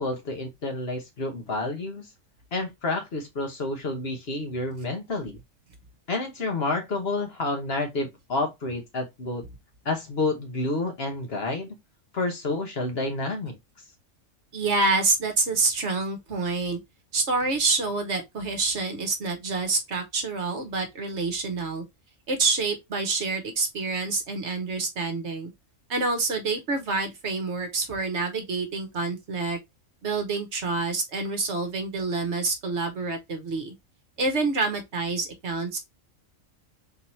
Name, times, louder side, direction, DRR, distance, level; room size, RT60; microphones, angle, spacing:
voice 1, 0.0-2.1 2.5-5.4 6.1-9.5 9.8-11.8 12.1-13.6, left 2 dB, 50° left, 1.2 m, -29 dB
voice 2, 14.5-16.8 17.1-21.8 22.3-25.5 25.9-29.6 30.0-33.7 34.2-35.8, right 3 dB, 60° right, 1.2 m, -27 dB
3.9 x 2.8 x 4.3 m
omnidirectional pair, 1.4 m